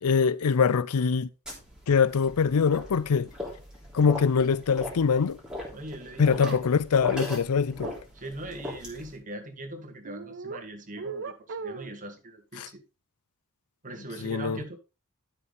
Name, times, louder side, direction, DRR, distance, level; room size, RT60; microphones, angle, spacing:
voice 1, 0.0-1.3 1.9-3.3 3.9-5.4 6.2-7.9 12.6-12.7 14.2-14.6, left 5 dB, 85° left, 0.5 m, -23 dB
sound 1, 1.5-9.2, left 1 dB, 5° right, 3.3 m, -40 dB
voice 2, 5.7-6.7 8.1-12.8 13.8-14.8, right 1 dB, 35° right, 1.7 m, -41 dB
sound 2, 6.4-6.6 7.8-8.0 10.0-10.6 11.0-12.0, right 4 dB, 55° right, 0.7 m, -37 dB
12.5 x 6.0 x 3.3 m
head